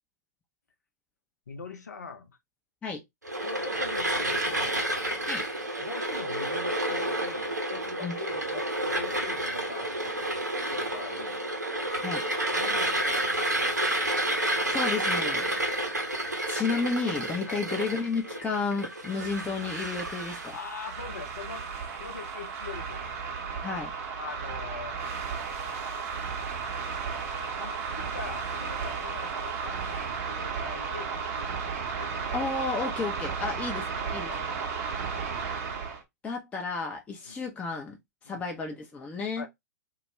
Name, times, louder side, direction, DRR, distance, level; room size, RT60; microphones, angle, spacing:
voice 1, 1.5-2.4 3.4-4.9 5.8-8.7 8.9-10.3 10.8-11.5 12.5-13.6 17.5-17.6 20.5-23.3 24.2-25.0 27.5-31.6 32.0-32.3 33.4-33.5 34.2-34.4 37.2-37.4 38.2-38.5 39.4-39.5, left 5 dB, 75° left, 0.6 m, -42 dB
sound 1, 3.2-20.5, right 1 dB, 90° right, 0.7 m, -30 dB
voice 2, 14.6-15.5 16.5-20.5 23.6-23.9 32.3-34.3 36.2-38.0 38.2-39.4, left 4 dB, 15° left, 0.5 m, -32 dB
sound 2, 19.0-36.0, right 5 dB, 50° right, 0.7 m, -34 dB
2.2 x 2.1 x 3.0 m
figure-of-eight pair, 105°, 9 cm